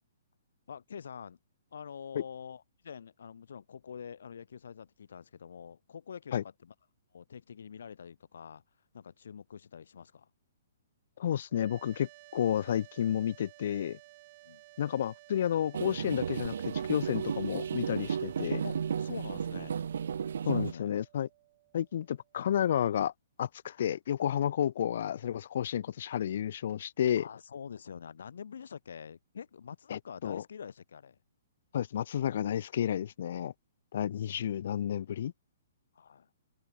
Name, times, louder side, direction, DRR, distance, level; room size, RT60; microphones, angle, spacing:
voice 1, 0.7-1.4 1.7-6.7 7.1-8.6 8.9-10.3 14.4-14.6 18.6-19.7 20.4-20.9 27.2-31.2 35.9-36.3, left 7 dB, 75° left, 4.6 m, -46 dB
voice 2, 11.2-14.0 14.8-18.6 20.5-21.3 21.7-23.1 23.4-27.2 29.9-30.4 31.7-33.5 33.9-35.3, left 10 dB, 55° left, 0.4 m, -31 dB
sound 1, 11.5-22.6, right 22 dB, 30° right, 3.6 m, -57 dB
sound 2, 15.7-20.7, right 7 dB, 75° right, 0.6 m, -34 dB
open air
hypercardioid pair, 165°, 0 cm